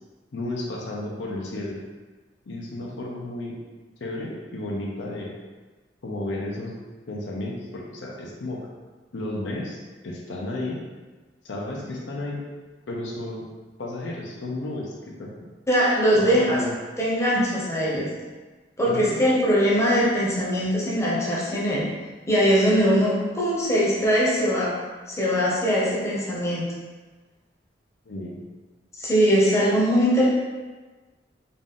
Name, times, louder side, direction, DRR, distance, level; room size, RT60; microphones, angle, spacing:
voice 1, 0.3-1.8 2.5-3.5 4.0-5.3 6.0-6.7 7.1-8.7 9.1-10.8 11.4-12.4 12.9-13.4 13.8-15.3 16.1-16.7 18.9-19.2 28.1-28.4, left 2 dB, 75° left, -2 dB, 0.6 m, -32 dB
voice 2, 15.7-16.6 17.0-18.1 18.8-21.8 22.3-24.7 25.1-26.7 29.0-30.3, equal, 15° left, -6 dB, 0.8 m, -21 dB
3.8 x 2.4 x 3.7 m, 1.3 s
head